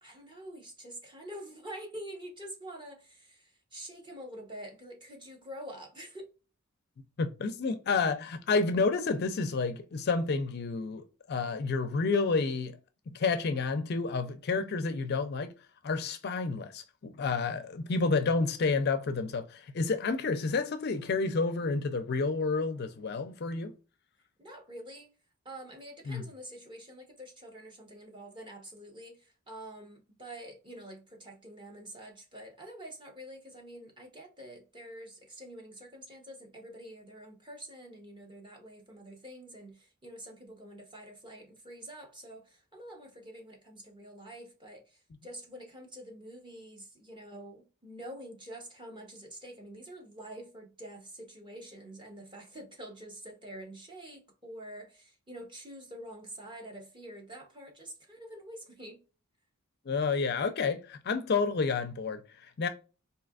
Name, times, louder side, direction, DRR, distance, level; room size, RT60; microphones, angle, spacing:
voice 1, 0.0-6.3 24.4-25.1 25.4-59.0, right 1 dB, 20° right, 1.0 m, -47 dB
voice 2, 7.2-12.8 13.1-15.5 15.8-23.7 26.1-26.2 59.9-62.7, left 4 dB, 50° left, 0.4 m, -30 dB
4.1 x 2.8 x 2.3 m
head